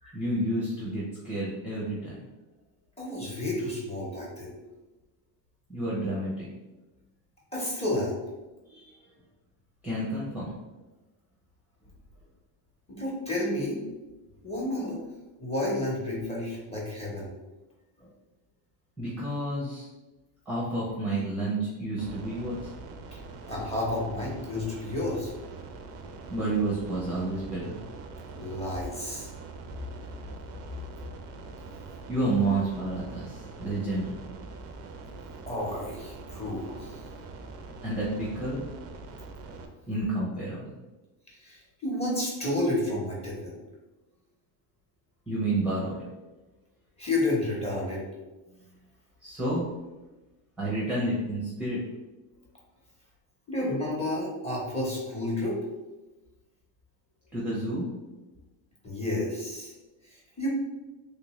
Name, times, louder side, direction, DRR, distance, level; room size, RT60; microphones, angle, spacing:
voice 1, 0.1-2.2 5.7-6.5 8.7-9.0 9.8-10.6 19.0-19.9 20.5-22.7 26.3-27.8 32.1-34.2 37.8-38.6 39.9-40.7 45.3-46.0 49.2-49.6 50.6-51.8 57.3-57.9, right 2 dB, 5° right, -7 dB, 0.7 m, -30 dB
voice 2, 3.0-4.5 7.5-8.2 12.9-13.8 14.4-15.0 15.4-17.3 23.5-25.3 28.4-29.3 35.5-37.0 41.4-43.6 47.0-48.0 53.5-55.6 58.8-59.7 60.4-60.5, left 1 dB, 15° left, -5 dB, 1.0 m, -31 dB
sound 1, 22.0-39.7, right 3 dB, 40° right, 0.4 m, -43 dB
3.2 x 2.5 x 3.0 m, 1.1 s
cardioid pair, 130°, 42 cm